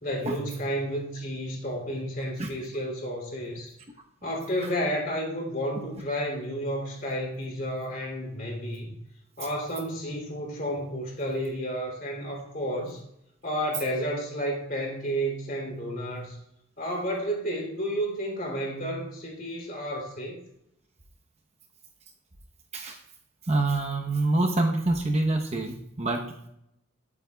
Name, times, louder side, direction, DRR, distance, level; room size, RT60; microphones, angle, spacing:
voice 1, 0.0-3.7 4.2-9.0 9.4-13.0 13.4-16.4 16.8-20.4, equal, 40° left, -1 dB, 3.0 m, -31 dB
voice 2, 23.5-26.2, right 2 dB, 30° right, 2 dB, 0.9 m, -26 dB
20.0 x 8.5 x 2.3 m, 0.80 s
head